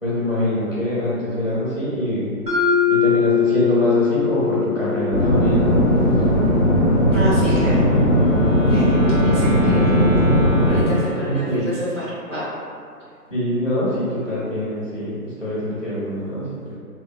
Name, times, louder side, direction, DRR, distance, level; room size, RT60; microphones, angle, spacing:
voice 1, 0.0-2.3 2.9-5.8 9.3-9.5 11.2-11.8 13.3-16.7, left 1 dB, 40° left, -8 dB, 0.4 m, -24 dB
Mallet percussion, 2.5-6.5, left 8 dB, 85° right, 1.0 m, -22 dB
sound 1, 5.1-10.8, equal, 25° right, 1.4 m, -17 dB
voice 2, 7.1-7.8 8.7-10.2 10.6-12.4, equal, 55° right, -11 dB, 1.5 m, -28 dB
Wind instrument woodwind instrument, 7.6-11.7, equal, ahead, 0.8 m, -31 dB
2.9 x 2.2 x 2.3 m, 2.2 s
figure-of-eight pair, 170°, 46 cm